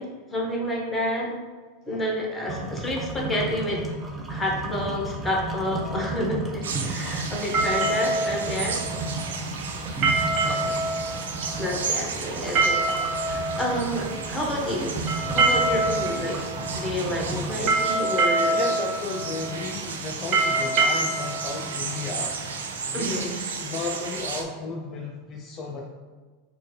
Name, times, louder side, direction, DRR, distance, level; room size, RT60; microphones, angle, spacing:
voice 1, 0.0-1.4 1.9-3.8 4.3-8.8 10.5-10.6 11.6-12.8 13.2-15.0 15.3-16.4 16.7-18.6 22.9-23.4, left 1 dB, 10° left, -2 dB, 1.0 m, -29 dB
sound 1, 2.5-17.7, right 2 dB, 20° right, 0.5 m, -34 dB
sound 2, 5.6-22.8, right 2 dB, 45° right, 0.8 m, -27 dB
sound 3, 6.6-24.4, right 5 dB, 90° right, 0.4 m, -34 dB
voice 2, 6.8-7.2 10.4-11.0 17.2-17.8 18.5-22.4 22.9-25.9, left 3 dB, 35° left, 1 dB, 0.4 m, -34 dB
4.4 x 2.2 x 3.1 m, 1.4 s
hypercardioid pair, 110°, 0 cm